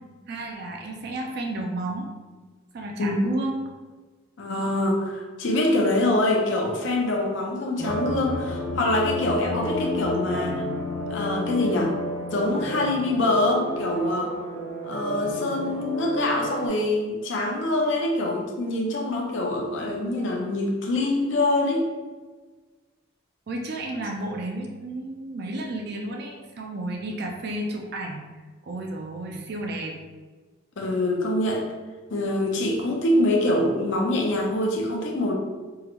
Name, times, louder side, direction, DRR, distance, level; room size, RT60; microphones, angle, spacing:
voice 1, 0.3-2.1 2.7-3.7 23.5-28.2 28.6-29.9, right 1 dB, 50° right, 1 dB, 0.3 m, -32 dB
voice 2, 4.4-10.6 11.1-11.9 12.3-14.3 14.8-21.9 30.8-31.6 32.1-35.3, left 1 dB, 60° left, 0 dB, 0.5 m, -24 dB
sound 1, 7.8-16.7, left 1 dB, 65° right, 0.8 m, -31 dB
3.7 x 2.0 x 2.9 m, 1.3 s
head